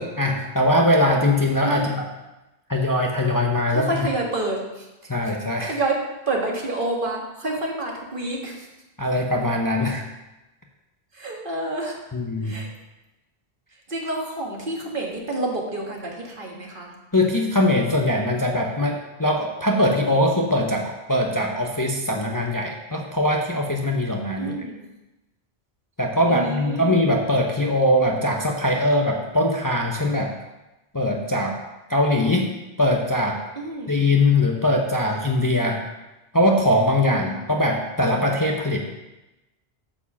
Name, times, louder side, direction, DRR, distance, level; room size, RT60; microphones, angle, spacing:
voice 1, 0.0-2.0 2.7-3.9 5.1-5.7 9.0-10.0 12.1-12.6 17.1-24.6 26.0-30.3 30.9-31.6 31.9-32.5 32.8-33.4 33.9-35.8 36.3-38.8, left 1 dB, 20° left, 1 dB, 0.7 m, -21 dB
voice 2, 1.6-2.0 3.7-4.9 5.2-5.3 5.6-8.7 9.9-10.0 11.1-12.0 12.4-12.7 13.9-16.9 24.4-24.8 26.3-27.0 33.6-34.0 37.0-37.4, right 2 dB, 55° right, -1 dB, 1.8 m, -29 dB
8.7 x 4.8 x 7.1 m, 1.0 s
omnidirectional pair, 1.1 m